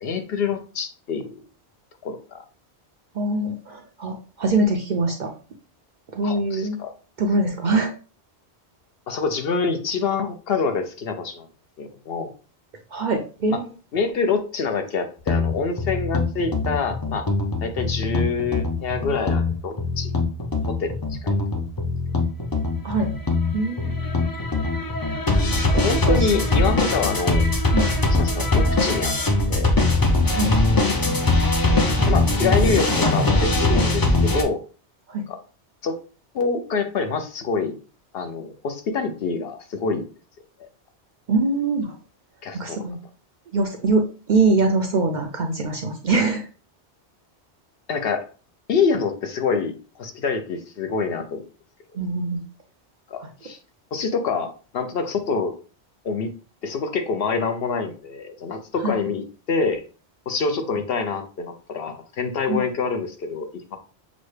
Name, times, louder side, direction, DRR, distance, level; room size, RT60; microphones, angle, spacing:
voice 1, 0.0-1.4 2.0-2.4 6.2-6.9 9.1-11.5 11.8-12.3 13.5-13.6 13.9-17.3 17.6-20.1 20.7-20.9 21.2-21.4 25.8-27.5 28.1-29.1 29.5-29.7 31.7-34.0 34.3-34.6 35.3-35.4 35.8-35.9 36.3-37.8 38.1-40.0 42.4-42.8 47.9-48.3 48.7-51.5 53.1-53.6 53.9-55.5 56.0-56.3 56.6-59.8 60.3-63.8, left 5 dB, 65° left, 7 dB, 0.8 m, -26 dB
voice 2, 3.1-5.3 6.1-6.8 7.2-7.9 12.9-13.7 22.8-23.1 23.5-23.9 25.5-26.3 27.7-27.9 30.3-30.5 35.1-35.2 41.3-41.9 42.5-43.0 43.5-46.5 52.0-52.4 58.8-58.9 62.5-62.6, right 3 dB, 55° right, 3 dB, 0.6 m, -23 dB
sound 1, 15.3-34.4, left 2 dB, 30° left, 0.4 m, -21 dB
6.1 x 2.1 x 3.2 m, 0.37 s
omnidirectional pair, 1.2 m